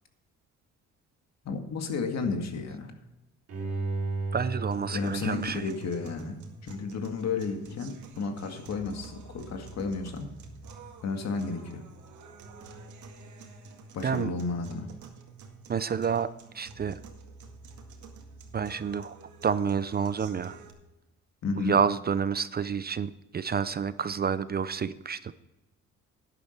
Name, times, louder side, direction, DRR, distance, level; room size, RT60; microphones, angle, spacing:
voice 1, 1.5-2.9 4.9-10.3 11.0-11.8 13.9-14.9 21.4-21.8, left 4 dB, 60° left, 5 dB, 2.0 m, -32 dB
Bowed string instrument, 3.5-6.6 7.0-7.1, right 3 dB, 50° right, 3.2 m, -35 dB
voice 2, 4.3-5.6 14.0-14.3 15.7-17.0 18.5-19.1 19.4-20.6 21.6-25.3, right 6 dB, 30° right, 15 dB, 0.5 m, -29 dB
sound 1, 4.7-20.7, right 3 dB, 75° right, 2.0 m, -48 dB
12.0 x 10.0 x 4.5 m, 0.97 s
cardioid pair, 90°, 30 cm